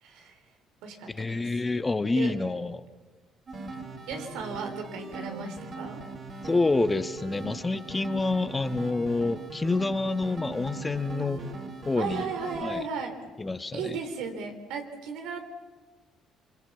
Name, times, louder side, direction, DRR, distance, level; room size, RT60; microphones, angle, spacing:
voice 1, 0.0-0.4 0.8-1.5 2.1-2.5 4.1-6.0 12.0-13.2 13.7-15.4, right 5 dB, 80° right, 5 dB, 3.6 m, -35 dB
voice 2, 1.1-2.8 6.4-11.4 11.8-12.3 12.6-12.8 13.4-14.0, left 3 dB, 20° left, 10 dB, 1.4 m, -27 dB
sound 1, 3.5-12.6, right 3 dB, 50° right, 6.2 m, -40 dB
27.0 x 23.5 x 7.3 m, 1.4 s
supercardioid pair, 65°, 0 cm